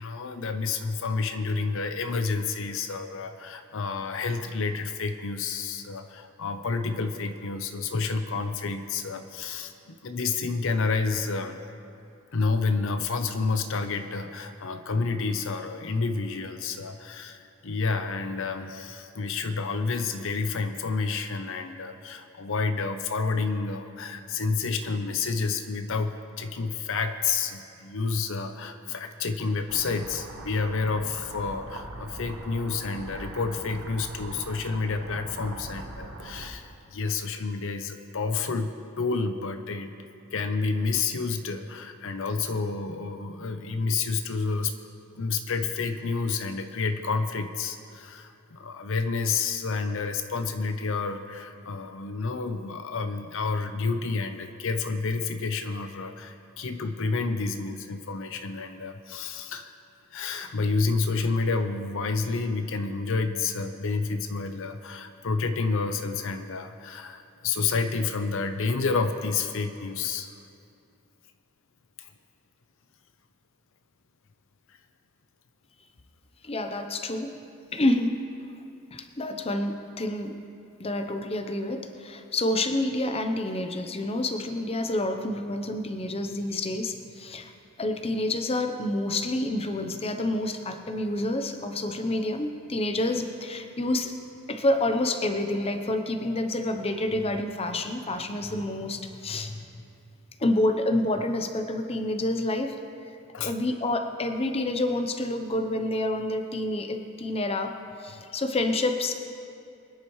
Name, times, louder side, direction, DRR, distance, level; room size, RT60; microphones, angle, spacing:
voice 1, 0.0-11.6 12.3-39.9 40.3-44.7 45.2-59.7 60.1-70.3 72.0-72.1 74.7-74.8 103.3-103.5, left 4 dB, 60° left, 7 dB, 0.6 m, -29 dB
sound 1, 29.7-36.5, right 2 dB, 60° right, 1.2 m, -41 dB
voice 2, 76.4-77.3 77.7-78.2 78.9-80.3 80.8-87.5 87.8-94.1 94.5-99.6 100.4-102.8 103.4-109.1, left 1 dB, 25° left, 6 dB, 0.7 m, -28 dB
24.5 x 10.5 x 3.1 m, 2.6 s
head